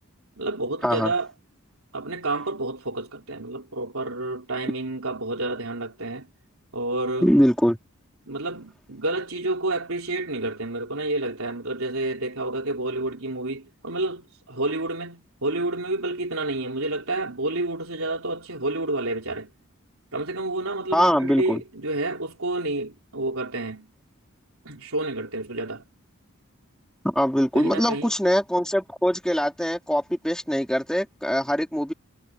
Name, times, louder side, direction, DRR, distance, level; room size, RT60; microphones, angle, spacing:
voice 1, 0.4-1.3 1.9-6.3 6.7-7.3 8.3-19.5 20.1-23.9 24.7-25.8 27.5-28.1, right 2 dB, 80° right, 3.7 m, -29 dB
voice 2, 7.2-7.8 20.9-21.6 27.0-31.9, equal, 5° left, 4.5 m, -22 dB
head